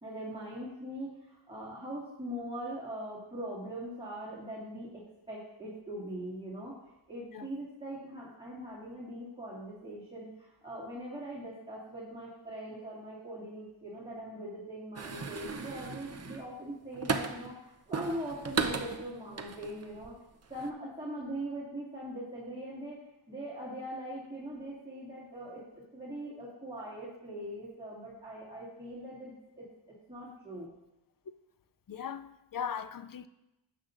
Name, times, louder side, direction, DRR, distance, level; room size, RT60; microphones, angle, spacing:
voice 1, 0.0-6.8 7.1-20.1 20.5-29.7 30.1-30.7, right 1 dB, 10° right, 2.3 m, -41 dB
sound 1, 15.0-17.5 17.9-20.1 20.4-20.7, right 5 dB, 30° right, 0.7 m, -36 dB
voice 2, 31.9-33.3, left 8 dB, 45° left, 0.5 m, -38 dB
12.0 x 7.7 x 2.5 m
wide cardioid pair, 80°, 47 cm